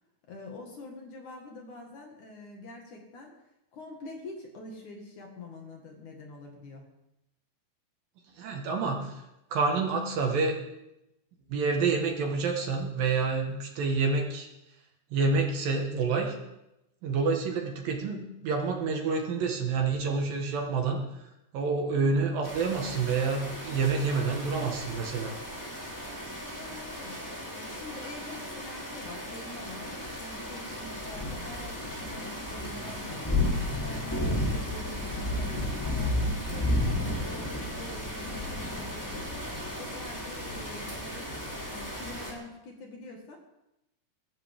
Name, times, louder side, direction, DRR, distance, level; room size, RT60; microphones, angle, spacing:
voice 1, 0.3-3.3 3.7-6.9 26.5-27.2 27.5-36.9 37.2-39.5 39.7-41.3 41.7-43.4, left 2 dB, 55° left, 1 dB, 2.9 m, -45 dB
voice 2, 8.4-9.1 9.5-10.5 11.5-14.5 15.1-16.4 17.0-21.0 21.5-25.4, right 4 dB, 65° right, 2 dB, 3.1 m, -28 dB
sound 1, 22.4-42.3, left 1 dB, 5° left, 2.5 m, -34 dB
22.0 x 13.5 x 3.7 m, 0.90 s
omnidirectional pair, 4.8 m